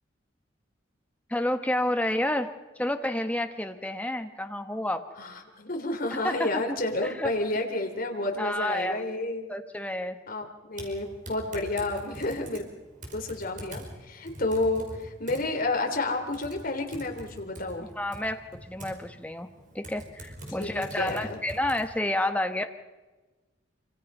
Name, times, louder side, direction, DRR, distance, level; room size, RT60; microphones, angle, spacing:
voice 1, 1.3-2.5 2.8-5.0 6.2-6.5 7.0-7.3 8.4-9.0 9.5-10.2 18.0-19.5 19.7-22.6, left 1 dB, 10° left, 6 dB, 1.3 m, -29 dB
voice 2, 5.2-9.5 10.3-12.6 13.1-17.9 20.6-21.4, left 2 dB, 50° left, 3 dB, 3.4 m, -30 dB
Typing, 10.7-21.9, right 1 dB, 45° right, 5.5 m, -45 dB
26.5 x 25.5 x 5.6 m, 1.2 s
head